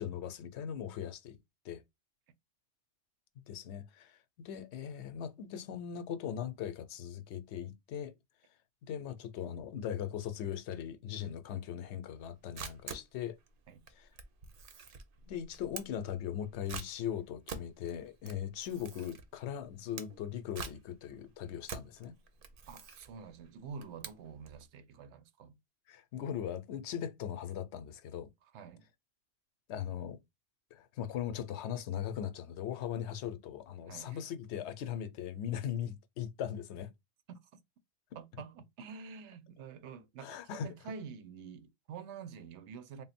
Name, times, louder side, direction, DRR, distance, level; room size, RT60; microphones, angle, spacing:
voice 1, 0.0-1.4 1.6-1.8 3.5-8.1 8.9-13.4 14.0-14.1 15.3-22.1 25.9-28.3 29.7-30.2 30.7-36.9 40.2-40.7, left 9 dB, 80° left, 0.8 m, -39 dB
Camera, 12.2-24.6, right 5 dB, 60° right, 0.8 m, -47 dB
voice 2, 22.7-25.6 28.5-28.9 33.9-34.2 37.3-37.4 38.1-43.0, right 6 dB, 85° right, 0.9 m, -47 dB
3.7 x 2.1 x 4.1 m
omnidirectional pair, 1.1 m